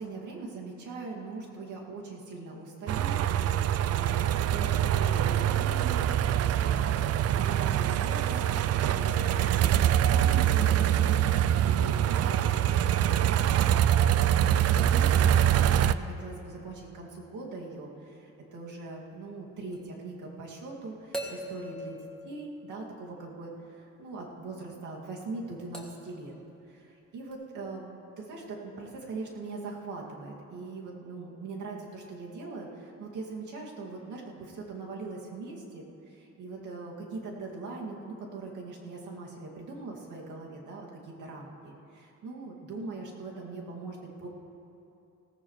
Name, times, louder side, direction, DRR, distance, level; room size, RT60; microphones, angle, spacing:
voice 1, 0.0-3.2 3.8-6.1 6.4-12.5 13.1-13.9 14.1-22.0 22.2-26.3 26.7-27.9 28.2-35.8 36.1-44.3, right 3 dB, 80° right, -2 dB, 2.4 m, -41 dB
sound 1, 2.9-15.9, right 10 dB, 55° right, 0.4 m, -24 dB
sound 2, 19.7-19.8 21.1-23.2 25.7-26.2 27.3-27.4, right 1 dB, 5° left, 2.2 m, -40 dB
17.5 x 15.0 x 3.2 m, 2.8 s
cardioid pair, 90°, 30 cm